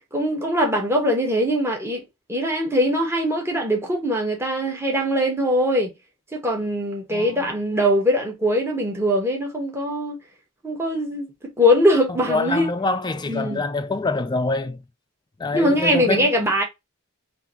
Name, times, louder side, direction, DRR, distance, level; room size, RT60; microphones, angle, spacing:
voice 1, 0.1-2.0 2.3-5.9 6.4-10.2 10.6-11.3 11.6-12.7 13.3-13.6 15.5-16.6, equal, 10° right, 1.0 m, -21 dB
voice 2, 7.1-7.5 12.1-14.8 15.4-16.5, left 3 dB, 20° left, 0.3 m, -26 dB
3.6 x 2.6 x 2.9 m
head